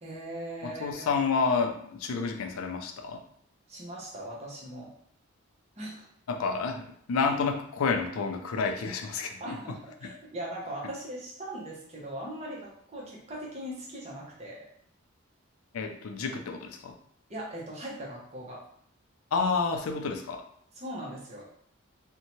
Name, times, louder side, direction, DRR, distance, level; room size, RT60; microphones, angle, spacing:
voice 1, 0.0-1.1 3.7-4.9 5.8-6.1 9.4-14.7 17.3-18.6 20.8-21.5, right 1 dB, 30° right, -4 dB, 0.7 m, -40 dB
voice 2, 0.6-3.2 6.3-9.6 10.0-10.1 15.7-16.9 19.3-20.4, left 5 dB, 90° left, 5 dB, 0.4 m, -29 dB
2.7 x 2.1 x 2.9 m, 0.66 s
head